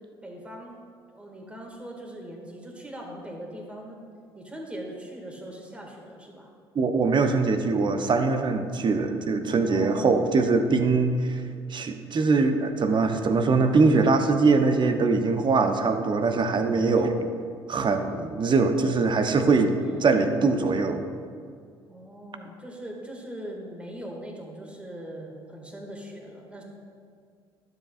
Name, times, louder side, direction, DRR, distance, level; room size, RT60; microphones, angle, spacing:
voice 1, 0.2-0.8 1.1-4.0 4.3-6.5 9.7-10.4 19.8-20.3 21.9-26.6, right 1 dB, 10° right, -1 dB, 2.1 m, -41 dB
voice 2, 6.7-11.4 11.7-17.2 17.7-21.0, right 4 dB, 35° right, 7 dB, 0.8 m, -22 dB
12.0 x 7.8 x 2.5 m, 2.1 s
hypercardioid pair, 55°, 13 cm